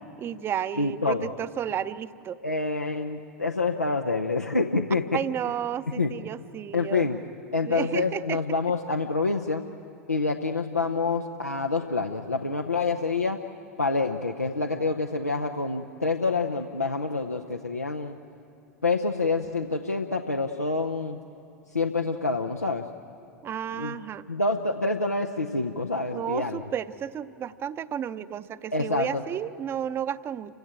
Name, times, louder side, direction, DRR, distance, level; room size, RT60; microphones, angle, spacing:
voice 1, 0.2-2.4 5.1-7.1 7.6-8.4 23.4-24.3 26.1-30.5, right 9 dB, 30° right, 14 dB, 0.7 m, -32 dB
voice 2, 0.7-1.3 2.4-5.2 6.0-6.1 6.7-7.2 7.5-9.6 10.1-13.4 13.8-18.2 18.8-21.2 21.7-22.8 23.8-24.0 24.3-26.6 28.7-29.2, left 3 dB, 90° left, 4 dB, 0.8 m, -27 dB
28.5 x 16.0 x 8.8 m, 2.8 s
figure-of-eight pair, 85°, 8 cm